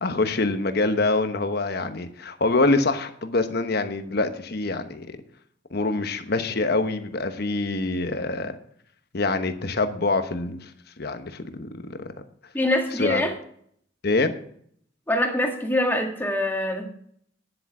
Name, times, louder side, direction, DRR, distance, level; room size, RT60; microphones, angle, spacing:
voice 1, 0.0-5.2 5.7-8.6 9.1-10.7 11.0-12.1 13.0-13.2 14.0-14.3, left 3 dB, 55° left, 8 dB, 1.1 m, -25 dB
voice 2, 12.5-13.3 15.1-16.9, left 1 dB, 10° left, 2 dB, 1.8 m, -24 dB
10.0 x 8.0 x 6.0 m, 0.64 s
head